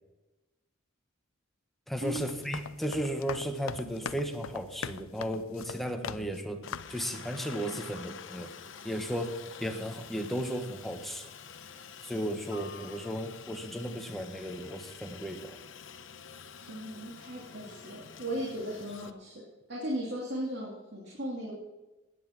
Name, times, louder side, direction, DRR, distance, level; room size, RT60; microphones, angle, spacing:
voice 1, 1.9-8.5 8.8-11.3 12.0-15.6, equal, ahead, 4 dB, 1.4 m, -35 dB
sound 1, 2.0-6.4 6.7-7.0, left 6 dB, 90° left, 0.5 m, -41 dB
Aircraft, 6.6-19.1, left 6 dB, 65° left, 0.9 m, -48 dB
voice 2, 16.7-21.5, equal, 55° right, -3 dB, 2.9 m, -37 dB
15.5 x 10.0 x 5.9 m, 1.1 s
head